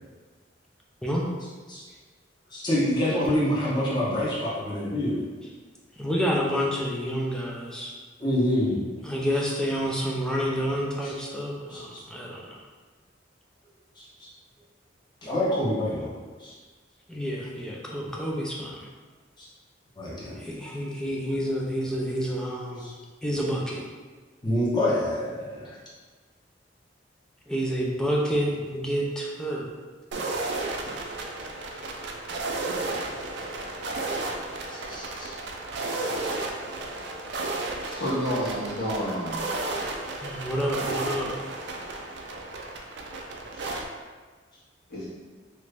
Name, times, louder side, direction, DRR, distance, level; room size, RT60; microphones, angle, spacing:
voice 1, 2.5-5.2 8.2-8.8 11.0-11.1 11.7-12.0 14.0-14.1 15.2-16.1 16.4-16.5 18.0-18.1 19.4-19.5 20.0-20.4 22.8-22.9 24.4-25.8 34.7-35.3 37.3-37.4 37.8-38.0 43.5-43.7, left 1 dB, 25° left, -8 dB, 0.9 m, -27 dB
voice 2, 6.0-7.9 9.0-12.5 17.1-18.8 20.4-22.9 23.2-23.8 27.5-29.7 40.2-41.3, equal, 5° left, -3 dB, 0.4 m, -28 dB
sound 1, 30.1-43.8, right 2 dB, 65° right, 0.4 m, -33 dB
voice 3, 38.0-39.4 44.9-45.1, equal, 60° left, -10 dB, 1.4 m, -29 dB
3.0 x 2.5 x 3.3 m, 1.4 s
head